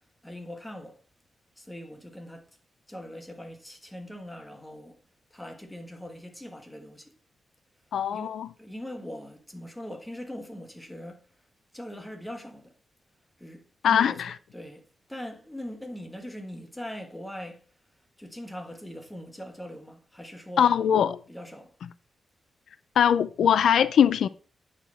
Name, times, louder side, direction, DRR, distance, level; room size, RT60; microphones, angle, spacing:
voice 1, 0.2-1.0 1.6-2.5 2.9-5.0 5.3-7.1 8.1-8.3 8.6-11.2 11.7-12.7 13.4-14.2 14.5-14.8 15.1-17.6 18.2-20.7 21.3-21.7, equal, 5° left, 1.5 m, -41 dB
voice 2, 7.9-8.5 13.8-14.3 20.6-21.2 23.0-24.3, left 8 dB, 80° left, 0.4 m, -21 dB
9.1 x 6.6 x 4.4 m
wide cardioid pair, 145°, 0 cm